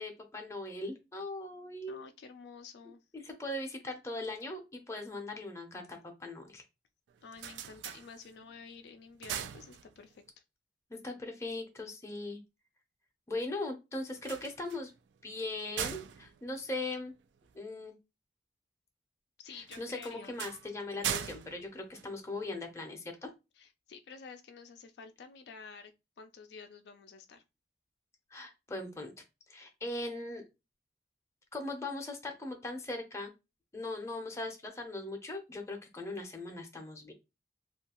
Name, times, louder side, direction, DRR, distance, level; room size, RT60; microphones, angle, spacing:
voice 1, 0.0-2.0 3.1-6.6 10.9-12.4 13.3-14.9 15.2-17.1 17.5-18.0 19.5-23.3 28.3-29.1 29.5-30.4 31.5-33.3 33.7-37.1, left 2 dB, 15° left, 0.5 m, -39 dB
voice 2, 1.9-3.0 7.2-10.2 19.4-20.4 23.6-25.9 26.2-27.4, left 5 dB, 70° left, 0.3 m, -50 dB
sound 1, 7.1-8.6 9.0-10.3 14.1-17.6 19.6-22.7, right 9 dB, 90° right, 0.3 m, -41 dB
2.6 x 2.3 x 2.9 m
head